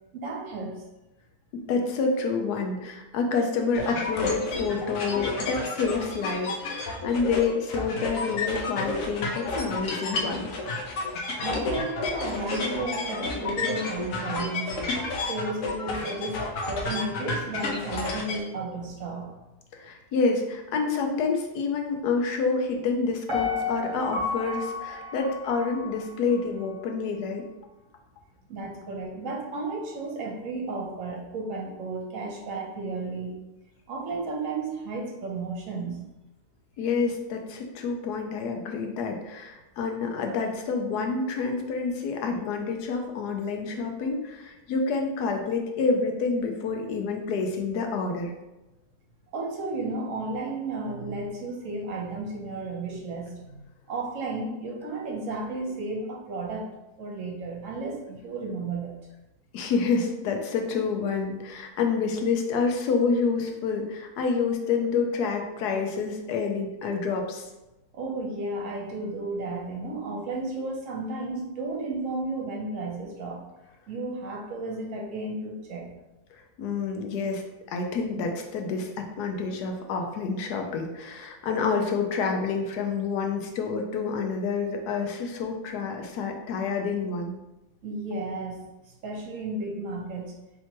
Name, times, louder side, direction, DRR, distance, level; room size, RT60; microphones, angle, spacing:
voice 1, 0.1-0.8 11.4-14.7 15.3-19.3 28.5-33.4 33.9-36.1 49.3-56.7 57.0-58.9 67.9-73.4 73.9-75.9 87.8-88.6 89.0-90.3, right 2 dB, 60° right, -1 dB, 1.1 m, -33 dB
voice 2, 1.7-10.5 19.7-27.4 36.8-48.3 59.5-67.4 76.6-77.4 77.7-87.3, left 4 dB, 90° left, 3 dB, 1.2 m, -28 dB
sound 1, 3.7-18.4, left 3 dB, 65° left, 1.1 m, -31 dB
Piano, 23.3-26.4 26.8-26.9, left 4 dB, 40° right, 0.8 m, -32 dB
4.4 x 3.3 x 2.9 m, 0.99 s
omnidirectional pair, 1.6 m